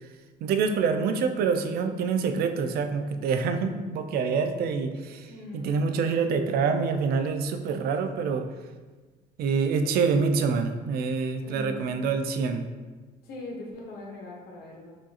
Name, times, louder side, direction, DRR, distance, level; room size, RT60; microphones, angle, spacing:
voice 1, 0.4-8.5 9.4-12.7, right 5 dB, 65° right, 7 dB, 0.4 m, -26 dB
voice 2, 5.3-5.8 11.4-12.0 13.2-14.9, left 2 dB, 70° left, -1 dB, 0.9 m, -41 dB
4.9 x 2.4 x 2.7 m, 1.3 s
cardioid pair, 110°, 17 cm